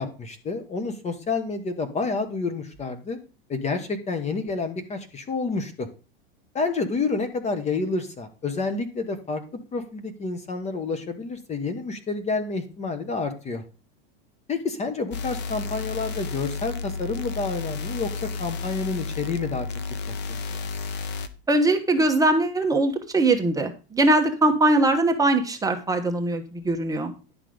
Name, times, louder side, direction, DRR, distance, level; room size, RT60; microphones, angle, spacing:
voice 1, 0.0-3.2 3.5-5.9 6.5-9.4 9.7-13.6 14.5-19.7 20.5-20.6, left 4 dB, 20° left, 9 dB, 1.2 m, -29 dB
sound 1, 15.1-21.3, left 4 dB, 35° left, 1.0 m, -32 dB
voice 2, 21.5-27.1, right 2 dB, 10° right, 3 dB, 1.3 m, -21 dB
11.0 x 6.0 x 5.0 m, 0.33 s
supercardioid pair, 135°, 30 cm